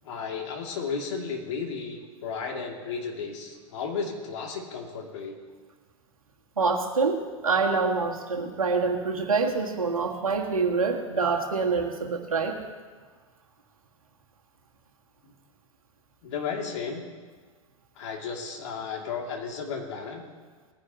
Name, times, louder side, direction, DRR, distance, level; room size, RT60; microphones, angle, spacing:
voice 1, 0.0-5.4 15.2-15.3 16.2-17.0 18.0-20.2, left 5 dB, 55° left, 1 dB, 2.4 m, -34 dB
voice 2, 6.6-12.6, right 4 dB, 80° right, 1 dB, 1.7 m, -26 dB
19.5 x 9.9 x 2.9 m, 1.5 s
figure-of-eight pair, 100°, 18 cm